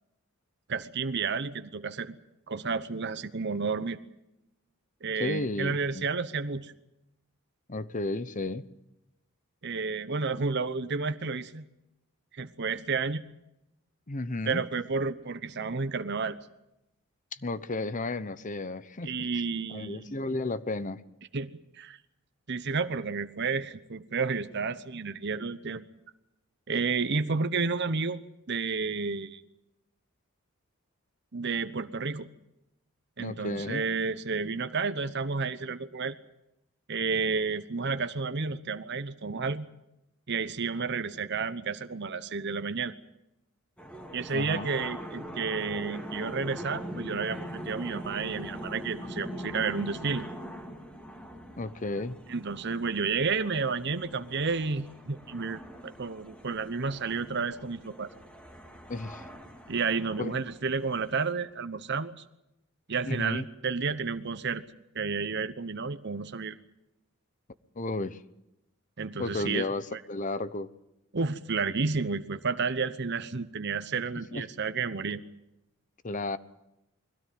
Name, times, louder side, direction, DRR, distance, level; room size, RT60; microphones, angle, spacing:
voice 1, 0.7-2.2 2.5-4.0 5.0-6.7 9.6-11.6 12.3-13.2 14.5-16.4 19.0-20.2 21.3-22.0 22.5-25.8 26.7-28.2 28.5-29.4 31.3-32.3 33.2-36.2 36.9-39.7 40.3-42.9 44.1-50.3 52.3-58.1 59.7-62.1 62.9-64.6 64.9-66.5 69.0-69.7 69.9-70.0 71.1-75.2, right 4 dB, 55° right, 11 dB, 0.9 m, -31 dB
voice 2, 5.2-6.1 7.7-8.7 14.1-14.6 17.3-19.3 19.7-21.0 33.2-33.8 44.3-44.7 51.6-52.2 58.9-59.2 60.2-60.4 63.0-63.5 67.8-68.2 69.2-70.7 74.3-74.4 76.0-76.4, left 2 dB, 35° left, 15 dB, 0.8 m, -33 dB
sound 1, 43.8-61.3, equal, 5° left, 2.4 m, -43 dB
22.0 x 16.5 x 9.3 m, 0.88 s
head